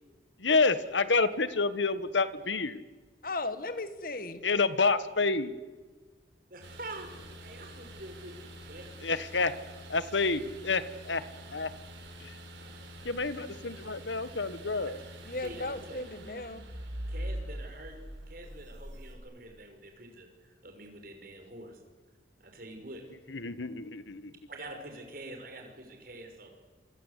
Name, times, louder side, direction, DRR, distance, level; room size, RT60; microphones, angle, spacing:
voice 1, 0.4-2.8 4.4-5.5 9.0-9.5 9.9-11.2 11.5-11.7 12.2-12.3 13.0-15.0 23.3-24.3, left 4 dB, 85° left, 14 dB, 1.5 m, -28 dB
voice 2, 3.2-4.4 15.2-16.6, left 2 dB, 50° left, 11 dB, 1.8 m, -36 dB
voice 3, 6.5-7.1 7.4-9.1 15.4-16.0 17.1-18.0 18.3-21.8 22.4-23.0 24.5-26.5, right 1 dB, 50° right, 4 dB, 5.8 m, -46 dB
sound 1, 6.6-19.1, equal, 90° right, 6.8 m, -44 dB
27.0 x 26.0 x 8.4 m, 1.4 s
head